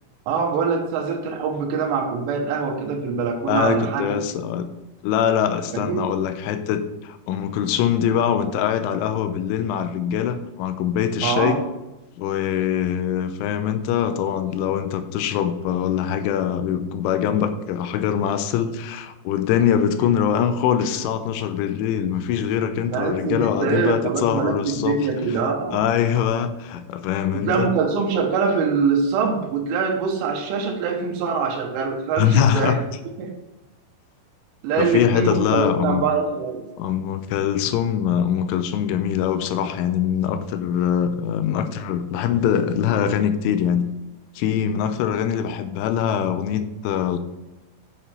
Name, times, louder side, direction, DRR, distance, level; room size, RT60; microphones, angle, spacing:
voice 1, 0.3-4.2 5.7-6.0 11.2-11.6 22.9-25.8 27.3-32.8 33.2-33.3 34.6-36.6, right 5 dB, 85° right, 0 dB, 3.7 m, -23 dB
voice 2, 3.5-4.7 5.0-11.7 12.2-25.0 25.4-27.7 32.2-32.8 34.8-36.0 36.8-43.9 44.4-47.2, left 9 dB, 90° left, 10 dB, 3.1 m, -23 dB
8.3 x 7.3 x 4.4 m, 1.0 s
omnidirectional pair, 5.5 m